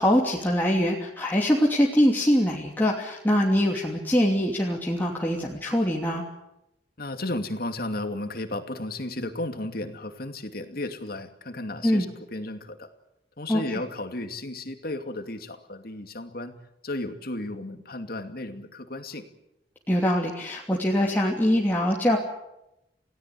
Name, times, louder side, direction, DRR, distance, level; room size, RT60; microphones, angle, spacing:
voice 1, 0.0-6.2 11.8-12.1 13.5-13.8 19.9-22.2, equal, 10° left, -3 dB, 2.9 m, -23 dB
voice 2, 7.0-12.1 12.3-12.9 13.4-16.6 16.8-19.2, left 2 dB, 60° left, 7 dB, 2.6 m, -34 dB
29.0 x 17.5 x 8.5 m, 0.87 s
head